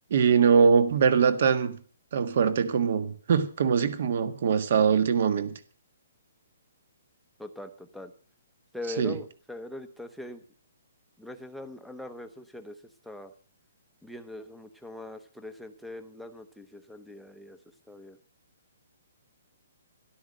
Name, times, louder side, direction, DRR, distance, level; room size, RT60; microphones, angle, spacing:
voice 1, 0.1-1.8 2.1-5.6 9.0-9.2, right 6 dB, 45° right, 1.6 m, -22 dB
voice 2, 7.4-8.1 8.7-10.4 11.2-12.8 13.0-13.3 14.0-17.6 17.9-18.2, left 1 dB, ahead, 0.9 m, -41 dB
13.0 x 12.5 x 6.5 m
hypercardioid pair, 175°, 0 cm